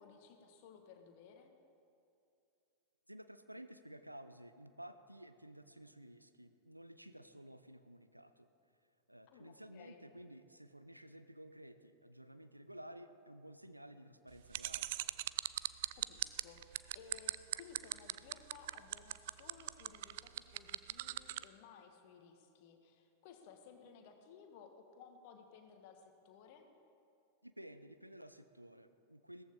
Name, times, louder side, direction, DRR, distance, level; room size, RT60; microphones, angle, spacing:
voice 1, 0.0-1.5 9.3-10.0 16.0-26.7, left 6 dB, 50° left, 5 dB, 1.5 m, -58 dB
voice 2, 3.1-8.5 9.1-14.9 27.4-29.4, right 1 dB, 90° right, 10 dB, 0.6 m, -54 dB
sound 1, 14.5-21.4, right 17 dB, 55° right, 0.3 m, -38 dB
17.0 x 14.0 x 3.7 m, 2.6 s
figure-of-eight pair, 90°, 0 cm